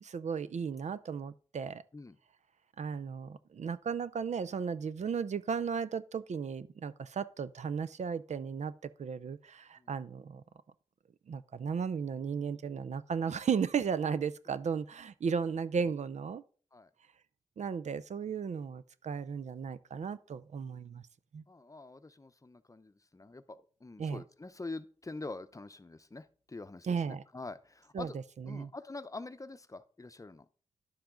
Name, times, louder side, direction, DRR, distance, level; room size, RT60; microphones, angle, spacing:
voice 1, 0.0-1.8 2.8-10.4 11.3-16.4 17.6-21.0 21.3-21.4 24.0-24.2 26.8-27.2 27.9-28.7, right 6 dB, 85° right, 0.5 m, -35 dB
voice 2, 21.5-28.2 28.5-30.5, left 3 dB, 30° left, 0.6 m, -45 dB
10.5 x 7.0 x 3.8 m
wide cardioid pair, 70°, 12 cm